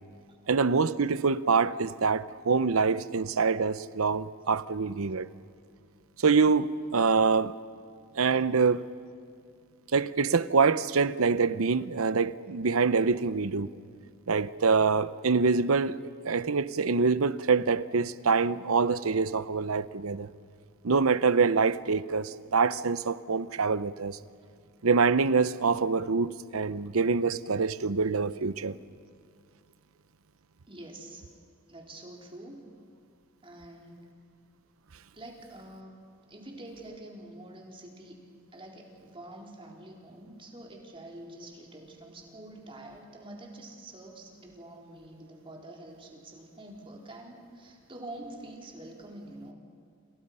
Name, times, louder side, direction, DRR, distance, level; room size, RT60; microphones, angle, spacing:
voice 1, 0.5-5.3 6.2-7.6 8.2-8.9 9.9-13.7 14.3-16.0 16.2-20.3 20.8-24.2 24.8-28.7, right 4 dB, 85° right, 0.8 m, -25 dB
voice 2, 30.7-31.2 31.7-32.6 33.4-34.1 35.1-35.9 36.3-38.2 38.5-49.5, right 1 dB, 25° right, 4.1 m, -46 dB
28.5 x 28.5 x 5.6 m
head